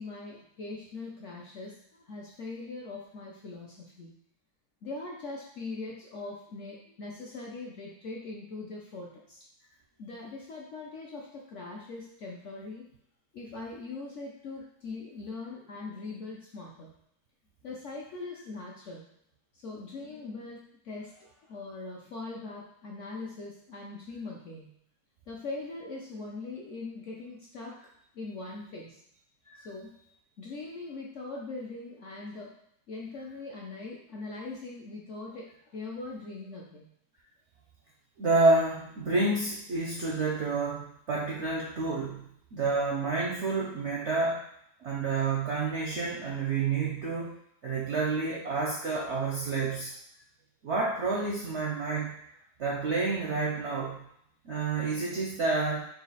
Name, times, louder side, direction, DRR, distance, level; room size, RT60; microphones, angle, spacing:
voice 1, 0.0-4.1 4.8-9.4 10.0-12.8 13.3-16.9 17.6-19.1 19.5-24.7 25.3-27.9 28.1-29.0 29.6-30.0 30.4-32.5 32.9-36.9, left 3 dB, 60° left, -3 dB, 0.8 m, -41 dB
voice 2, 38.2-44.4 44.8-47.4 47.6-49.9 50.6-52.1 52.6-54.0 54.4-55.9, right 3 dB, 65° right, -3 dB, 0.7 m, -29 dB
4.0 x 2.4 x 4.0 m, 0.73 s
omnidirectional pair, 1.8 m